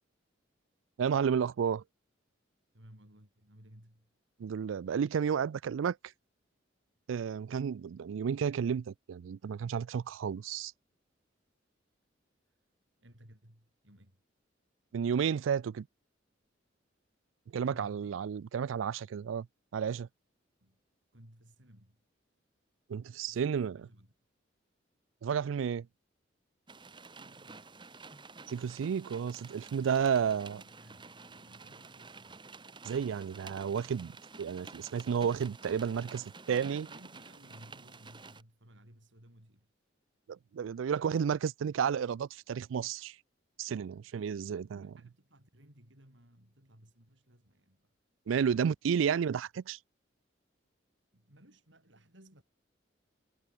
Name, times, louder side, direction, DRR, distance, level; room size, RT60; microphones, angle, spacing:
voice 1, 1.0-1.8 4.4-6.0 7.1-10.7 14.9-15.9 17.5-19.5 19.7-20.1 22.9-23.9 25.2-25.9 28.5-30.6 32.8-36.2 36.5-36.9 40.3-43.2 43.6-44.9 48.3-49.8, right 7 dB, 90° right, 0.4 m, -32 dB
voice 2, 2.7-4.1 13.0-14.2 17.6-18.2 20.6-20.8 21.1-22.0 23.3-24.1 27.2-27.7 29.7-32.4 35.9-39.7 44.0-47.9 51.1-52.4, right 1 dB, 70° right, 6.6 m, -59 dB
sound 1, 26.7-38.4, right 4 dB, 25° right, 1.7 m, -50 dB
head